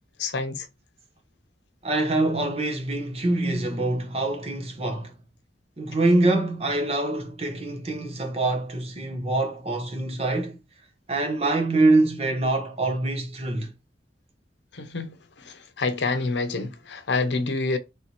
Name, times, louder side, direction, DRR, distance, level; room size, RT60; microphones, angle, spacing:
voice 1, 0.2-0.7 14.7-17.8, left 3 dB, 85° left, 0.7 m, -28 dB
voice 2, 1.8-5.1 5.8-10.6 11.1-13.7, right 2 dB, 35° right, 0.8 m, -24 dB
3.3 x 2.8 x 4.3 m
head